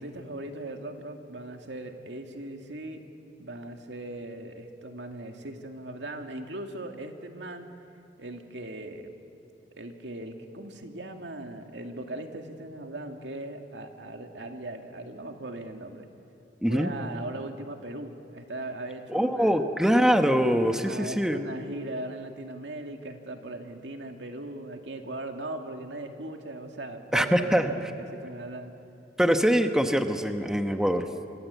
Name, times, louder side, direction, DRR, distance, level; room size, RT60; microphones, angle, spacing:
voice 1, 0.0-3.0 3.4-7.7 8.2-9.1 9.8-16.1 16.7-19.6 20.8-28.7, right 1 dB, 85° right, 4 dB, 2.2 m, -39 dB
voice 2, 16.6-16.9 19.1-21.4 27.1-27.7 29.2-31.1, equal, 5° right, 6 dB, 1.1 m, -23 dB
27.5 x 24.5 x 8.3 m, 2.8 s
head